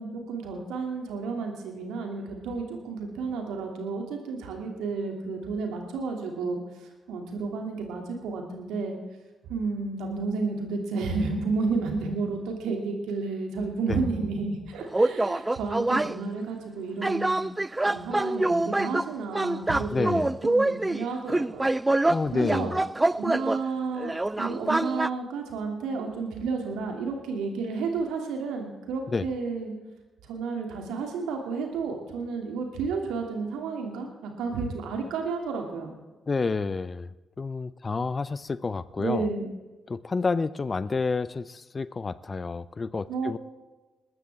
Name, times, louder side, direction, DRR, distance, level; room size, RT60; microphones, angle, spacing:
voice 1, 0.0-6.6 7.1-9.0 9.5-17.5 17.9-20.2 20.4-21.7 22.3-22.7 23.2-29.7 30.2-35.9 39.0-39.5 43.1-43.3, right 4 dB, 75° right, 3 dB, 2.6 m, -31 dB
sound 1, 14.9-16.2 17.0-23.6 24.0-25.1, right 2 dB, 20° right, 0.4 m, -25 dB
voice 2, 19.9-20.3 22.1-22.8 29.1-29.3 36.3-37.1 37.4-39.3 39.9-43.4, left 4 dB, 40° left, 17 dB, 0.6 m, -29 dB
20.0 x 14.0 x 3.6 m, 1.2 s
hypercardioid pair, 40°, 0 cm